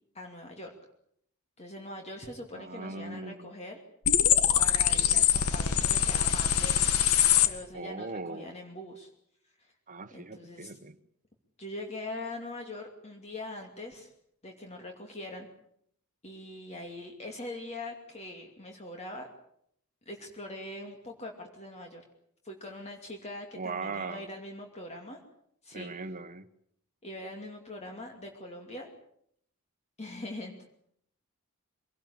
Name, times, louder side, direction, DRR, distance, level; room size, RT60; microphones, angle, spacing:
voice 1, 0.1-0.7 1.6-3.8 4.6-9.1 9.6-9.7 10.1-10.8 11.6-14.1 14.4-15.5 16.2-19.3 20.1-22.0 22.4-25.2 25.6-25.9 27.0-28.9 30.0-30.7, left 1 dB, 30° left, 2 dB, 2.7 m, -42 dB
voice 2, 2.5-3.5 4.9-5.2 7.7-8.5 9.9-10.9 23.6-24.3 25.7-26.5, right 3 dB, 35° right, 10 dB, 1.3 m, -39 dB
sound 1, 4.0-7.5, left 10 dB, 90° left, 1.8 m, -23 dB
24.5 x 18.5 x 8.7 m, 0.70 s
head